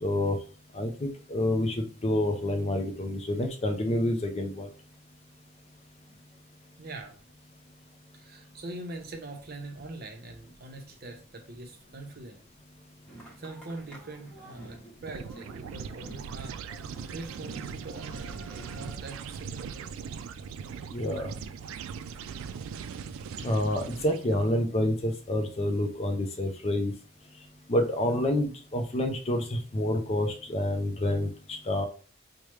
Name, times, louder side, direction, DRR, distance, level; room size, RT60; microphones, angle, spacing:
voice 1, 0.0-0.4 0.7-4.7 20.9-21.3 23.4-26.9 27.7-31.9, left 1 dB, 30° left, 5 dB, 0.5 m, -28 dB
voice 2, 6.8-7.2 8.1-12.4 13.4-16.6 17.1-19.9, right 2 dB, 50° right, 3 dB, 0.8 m, -43 dB
sound 1, 13.0-19.0, right 1 dB, 5° left, 1.1 m, -49 dB
sound 2, 15.0-24.5, right 6 dB, 85° right, 0.3 m, -40 dB
4.8 x 2.2 x 3.1 m, 0.39 s
head